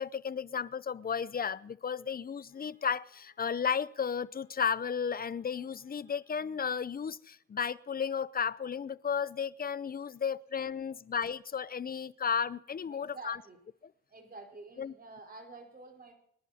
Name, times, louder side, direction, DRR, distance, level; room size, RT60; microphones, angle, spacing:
voice 1, 0.0-13.4 14.8-14.9, left 7 dB, 30° left, 19 dB, 0.6 m, -34 dB
Wind instrument woodwind instrument, 2.5-7.0, left 5 dB, 60° left, 7.0 m, -72 dB
voice 2, 12.9-13.6 14.1-16.1, right 3 dB, 30° right, 3 dB, 4.8 m, -49 dB
25.0 x 11.0 x 4.3 m, 0.68 s
cardioid pair, 90°, 30 cm